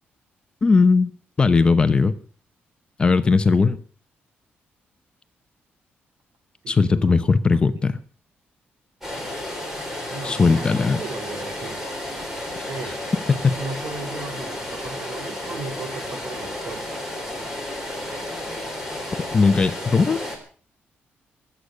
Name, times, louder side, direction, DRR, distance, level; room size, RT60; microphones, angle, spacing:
voice 1, 0.6-1.1 1.4-2.1 3.0-3.8 6.7-8.0 10.2-11.0 13.4-13.6 19.3-20.2, left 4 dB, 25° left, 11 dB, 0.8 m, -18 dB
voice 2, 6.6-7.8 10.1-11.8 12.7-13.0 13.5-17.0, right 3 dB, 70° right, 9 dB, 3.2 m, -37 dB
sound 1, 9.0-20.4, left 1 dB, 10° right, 3.8 m, -32 dB
22.0 x 8.2 x 6.4 m, 0.42 s
wide cardioid pair, 175°, 4 cm